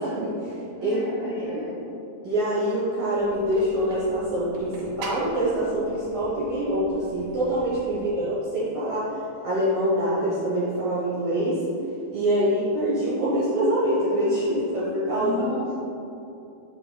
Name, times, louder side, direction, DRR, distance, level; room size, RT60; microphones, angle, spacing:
voice 1, 0.0-1.0 1.4-1.5 2.2-9.1 9.4-11.6 12.1-15.3, right 1 dB, 65° right, -9 dB, 1.8 m, -25 dB
voice 2, 0.8-1.7 7.9-8.3 15.1-15.7, left 2 dB, 75° left, -11 dB, 1.1 m, -34 dB
sound 1, 3.2-8.2, right 3 dB, 80° right, 1.9 m, -44 dB
7.7 x 5.3 x 2.3 m, 2.8 s
omnidirectional pair, 4.7 m